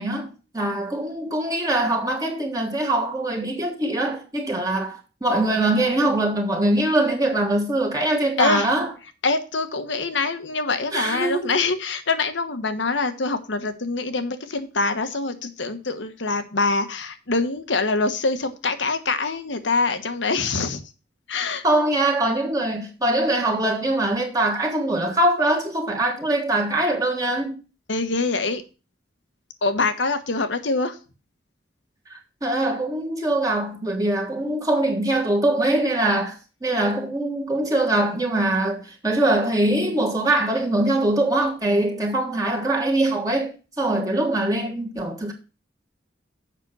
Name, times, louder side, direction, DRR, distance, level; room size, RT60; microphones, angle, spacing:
voice 1, 0.0-8.9 10.9-11.5 21.6-27.6 32.1-45.3, right 1 dB, 20° right, 1.4 m, -23 dB
voice 2, 8.4-8.7 9.2-20.8 21.3-21.6 27.9-28.6 29.6-31.0, left 3 dB, 85° left, 1.2 m, -24 dB
7.4 x 6.0 x 6.7 m
head